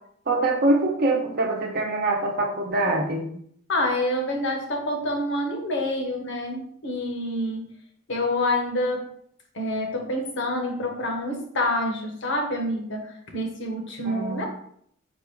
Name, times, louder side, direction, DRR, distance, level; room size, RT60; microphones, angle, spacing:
voice 1, 0.3-3.3 14.0-14.5, right 2 dB, 45° right, 0 dB, 0.9 m, -24 dB
voice 2, 3.7-7.6 8.1-9.1 9.5-14.5, left 1 dB, 60° left, 2 dB, 1.0 m, -27 dB
4.6 x 2.5 x 4.6 m, 0.66 s
head